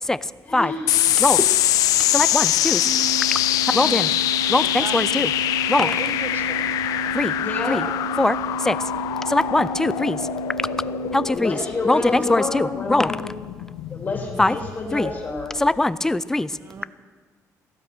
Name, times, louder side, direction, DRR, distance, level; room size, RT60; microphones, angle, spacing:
voice 1, 0.4-1.1 1.7-2.0 7.3-7.8 11.3-13.3 13.9-16.1, left 3 dB, 30° left, 0 dB, 3.3 m, -29 dB
sound 1, 0.9-15.7, left 13 dB, 90° left, 0.5 m, -24 dB
voice 2, 1.2-1.6 2.1-2.8 3.7-4.1 4.5-5.3 5.7-5.9 7.1-7.3 7.7-7.8 8.2-8.4 8.6-8.8 9.3-10.2 11.1-11.6 11.9-13.1 14.4-14.6 14.9-15.1 15.6-16.5, left 2 dB, 10° left, 16 dB, 0.4 m, -21 dB
sound 2, 2.8-11.3, right 3 dB, 65° right, 1.3 m, -32 dB
voice 3, 3.5-5.3 5.7-7.3 16.6-16.8, right 5 dB, 40° right, 9 dB, 1.2 m, -38 dB
15.5 x 13.5 x 6.2 m, 1.5 s
cardioid pair, 145°, 6 cm